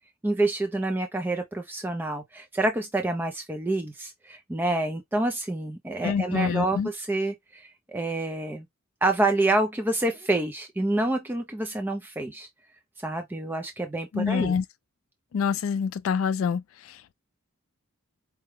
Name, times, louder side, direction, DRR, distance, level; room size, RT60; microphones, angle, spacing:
voice 1, 0.2-8.7 9.0-12.5 13.0-14.6, right 2 dB, 10° right, 0.3 m, -27 dB
voice 2, 6.0-6.9 14.1-14.6 15.3-17.1, left 6 dB, 65° left, 0.3 m, -26 dB
4.7 x 2.1 x 3.1 m
head